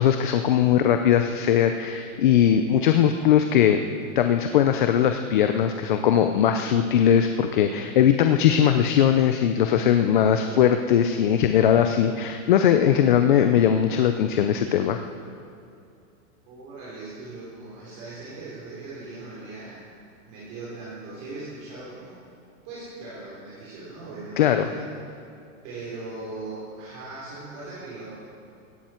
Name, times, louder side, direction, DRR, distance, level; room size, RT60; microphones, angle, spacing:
voice 1, 0.0-3.8 4.2-15.0 24.4-24.7, left 9 dB, 40° left, 7 dB, 0.5 m, -20 dB
voice 2, 16.5-19.9 20.3-22.2 22.6-24.8 25.6-28.2, right 3 dB, 35° right, -8 dB, 3.8 m, -39 dB
16.5 x 15.5 x 4.4 m, 2.5 s
supercardioid pair, 180°, 41 cm